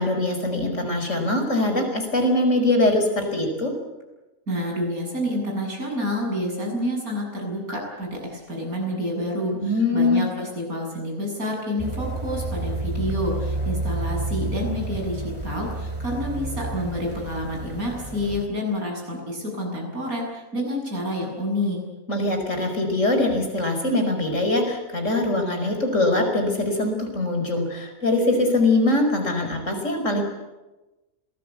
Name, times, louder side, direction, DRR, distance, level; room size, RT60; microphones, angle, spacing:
voice 1, 0.0-3.7 9.6-10.2 22.1-30.2, left 2 dB, 60° left, 4 dB, 5.5 m, -22 dB
voice 2, 4.5-21.8, left 1 dB, 90° right, 0 dB, 8.2 m, -28 dB
sound 1, 11.8-18.5, right 2 dB, 20° right, 2.4 m, -30 dB
26.5 x 19.5 x 8.4 m, 1.1 s
omnidirectional pair, 1.5 m